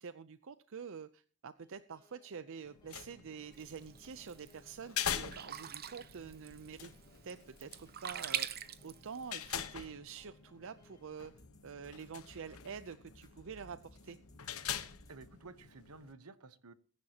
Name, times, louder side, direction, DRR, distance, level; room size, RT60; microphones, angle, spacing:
voice 1, 0.0-6.9 7.2-8.5 8.8-11.3 11.6-13.8 14.0-14.2, right 6 dB, 65° right, 13 dB, 0.6 m, -47 dB
sound 1, 1.6-15.3, left 1 dB, 20° left, 1.7 m, -65 dB
sound 2, 2.6-16.1, left 9 dB, 75° left, 1.1 m, -45 dB
Sink (filling or washing), 3.5-9.6, right 9 dB, 45° right, 0.9 m, -44 dB
voice 2, 15.1-16.7, right 3 dB, 80° right, 13 dB, 1.1 m, -53 dB
22.0 x 10.5 x 2.9 m, 0.39 s
head